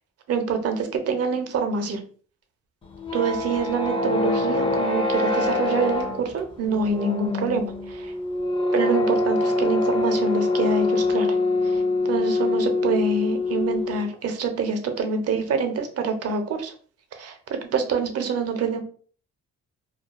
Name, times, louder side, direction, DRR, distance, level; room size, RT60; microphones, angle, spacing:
voice 1, 0.3-2.0 3.1-8.1 8.7-11.4 11.6-16.7 17.1-18.8, right 4 dB, 55° right, 6 dB, 0.6 m, -26 dB
sound 1, 2.8-14.1, left 2 dB, 20° left, 0.4 m, -24 dB
2.3 x 2.3 x 2.3 m, 0.43 s
cardioid pair, 90°, 30 cm